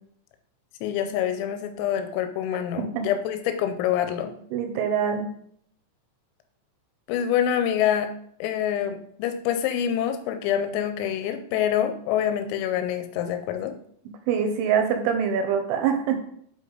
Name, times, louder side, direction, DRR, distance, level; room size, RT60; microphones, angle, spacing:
voice 1, 0.8-4.3 7.1-8.1 8.4-13.8, left 9 dB, 90° left, 8 dB, 3.3 m, -26 dB
voice 2, 4.5-5.3 14.3-16.2, right 7 dB, 85° right, 5 dB, 2.8 m, -24 dB
7.8 x 5.3 x 3.9 m, 0.66 s
omnidirectional pair, 5.9 m